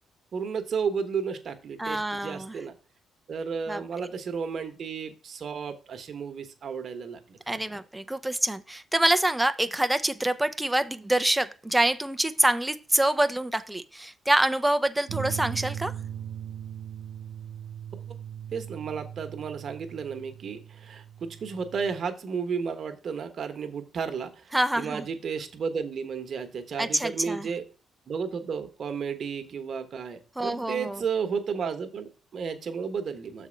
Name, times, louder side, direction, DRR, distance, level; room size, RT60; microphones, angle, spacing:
voice 1, 0.3-2.7 3.3-7.8 18.5-27.7 28.1-33.5, right 6 dB, 55° right, 1.2 m, -33 dB
voice 2, 1.8-2.5 3.7-4.1 7.5-15.9 24.5-25.0 26.8-27.5 30.4-31.0, right 1 dB, 10° right, 0.6 m, -26 dB
sound 1, 15.1-22.0, right 9 dB, 75° right, 0.6 m, -39 dB
6.6 x 4.3 x 5.1 m
cardioid pair, 90°, 0 cm